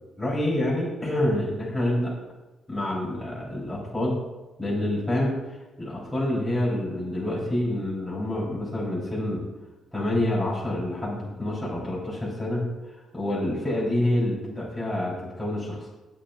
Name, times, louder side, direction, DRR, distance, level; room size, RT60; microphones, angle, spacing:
voice 1, 0.2-2.1 2.7-4.2 4.6-9.4 9.9-15.9, left 1 dB, 5° left, -7 dB, 4.2 m, -27 dB
20.5 x 8.1 x 2.6 m, 1.1 s
cardioid pair, 90°, 0 cm